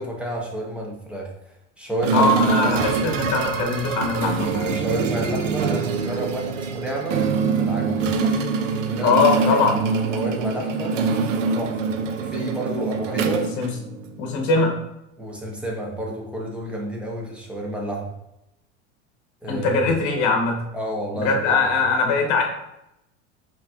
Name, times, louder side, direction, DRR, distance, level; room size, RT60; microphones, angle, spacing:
voice 1, 0.0-1.3 1.8-2.7 4.6-7.2 7.6-8.1 8.9-9.2 9.5-9.6 10.1-11.0 11.5-13.5 15.2-18.1 19.4-19.8 20.7-21.6, right 1 dB, 5° right, -2 dB, 1.1 m, -30 dB
sound 1, 2.0-14.3, right 5 dB, 90° right, 0.5 m, -24 dB
voice 2, 2.1-4.7 9.0-9.8 13.6-13.7 14.2-14.7 19.5-20.6 21.2-22.4, left 3 dB, 50° left, 2 dB, 1.1 m, -21 dB
5.1 x 3.0 x 2.4 m, 0.85 s
hypercardioid pair, 85°, 36 cm